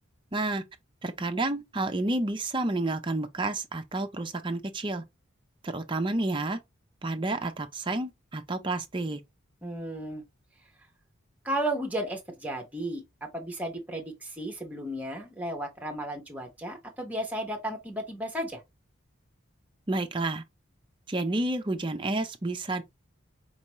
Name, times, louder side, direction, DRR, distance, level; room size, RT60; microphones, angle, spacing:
voice 1, 0.3-0.6 1.0-5.0 5.6-6.6 7.0-9.2 19.9-20.4 21.1-22.8, right 2 dB, 25° right, 0.5 m, -30 dB
voice 2, 9.6-10.2 11.4-18.6, right 1 dB, 5° right, 1.0 m, -34 dB
4.6 x 2.8 x 3.0 m
head